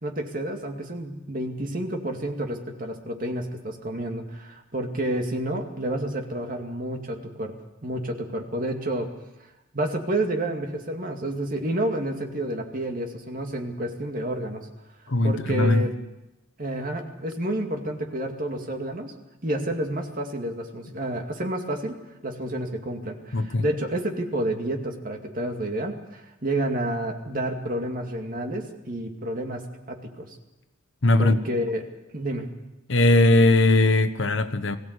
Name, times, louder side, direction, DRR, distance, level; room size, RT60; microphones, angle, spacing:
voice 1, 0.0-7.5 7.8-9.1 9.7-14.7 15.2-15.9 16.6-19.1 19.4-22.0 22.2-30.4 31.2-32.5, right 1 dB, 45° right, 3 dB, 2.3 m, -30 dB
voice 2, 15.1-15.8 23.3-23.6 31.0-31.4 32.9-34.8, left 2 dB, 70° left, 10 dB, 1.2 m, -19 dB
21.5 x 16.0 x 8.2 m, 1.0 s
head